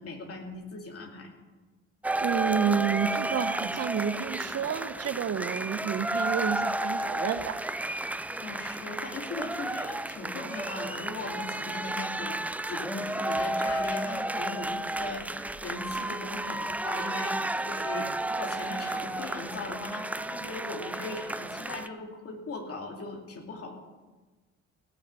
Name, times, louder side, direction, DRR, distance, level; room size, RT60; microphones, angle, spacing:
voice 1, 0.0-1.4 8.4-23.8, left 3 dB, 50° left, 1 dB, 2.8 m, -39 dB
sound 1, 2.0-21.9, right 2 dB, 5° right, 0.3 m, -32 dB
voice 2, 2.2-7.6, right 7 dB, 50° right, 10 dB, 1.1 m, -30 dB
17.5 x 6.5 x 7.6 m, 1.3 s
cardioid pair, 100°, 31 cm